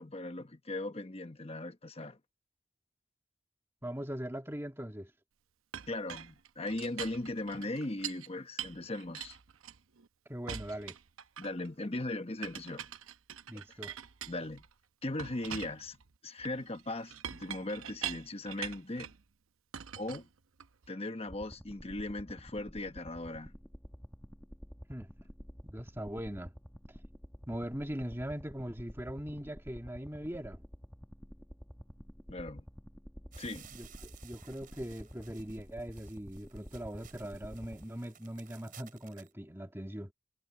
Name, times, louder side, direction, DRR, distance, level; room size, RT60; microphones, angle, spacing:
voice 1, 0.0-2.2 5.9-9.4 11.4-12.9 14.3-14.6 15.0-16.0 16.2-19.1 20.0-20.3 20.9-23.5 32.3-32.6 33.4-33.7, left 2 dB, 30° left, 1.1 m, -38 dB
voice 2, 3.8-5.1 10.3-11.0 13.5-14.0 24.9-25.1 25.6-26.5 27.5-30.6 33.7-40.1, equal, 10° right, 1.8 m, -41 dB
Chink clink, 5.7-8.3 8.6-10.1 10.5-11.7 12.4-14.7 15.2-19.2 19.7-20.9, right 9 dB, 85° right, 0.8 m, -44 dB
sound 1, 21.3-37.9, equal, 5° left, 1.5 m, -50 dB
sound 2, 33.3-39.3, right 9 dB, 40° right, 4.6 m, -57 dB
head